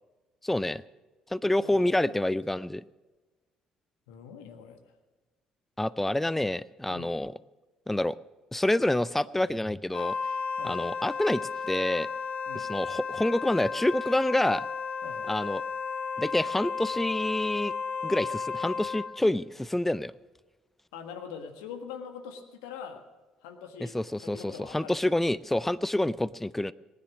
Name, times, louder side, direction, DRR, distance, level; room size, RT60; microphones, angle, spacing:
voice 1, 0.4-0.8 1.3-2.8 5.8-7.3 7.9-8.2 8.5-10.1 10.6-12.1 12.5-14.7 15.3-15.6 16.2-17.7 18.0-20.1 23.8-26.7, left 1 dB, 10° left, 18 dB, 0.4 m, -27 dB
voice 2, 1.6-2.2 4.1-4.8 6.9-7.1 10.6-10.9 12.5-12.7 15.0-15.3 20.9-23.0 23.4-24.0 24.2-25.1, left 7 dB, 80° left, 6 dB, 1.5 m, -43 dB
Wind instrument woodwind instrument, 9.9-19.2, left 5 dB, 55° left, 1.0 m, -33 dB
19.0 x 10.0 x 6.3 m, 1.2 s
hypercardioid pair, 55°, 3 cm